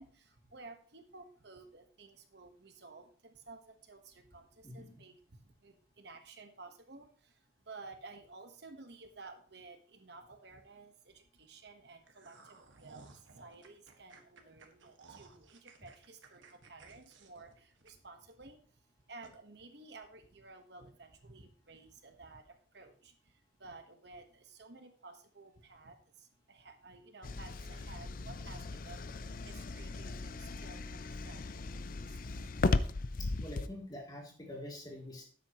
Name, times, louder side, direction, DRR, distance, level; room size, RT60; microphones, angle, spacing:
voice 1, 0.0-32.2 32.6-32.8 33.3-33.4, right 3 dB, 55° right, 6 dB, 1.2 m, -54 dB
voice 2, 4.6-5.0 28.4-28.6 33.2-35.2, left 1 dB, 20° left, 0 dB, 2.8 m, -46 dB
sound 1, 12.0-18.3 18.7-18.8 19.2-19.4, right 4 dB, 75° right, 1.6 m, -58 dB
sound 2, 27.2-33.7, left 3 dB, 45° left, 0.5 m, -36 dB
12.5 x 9.5 x 3.0 m, 0.43 s
head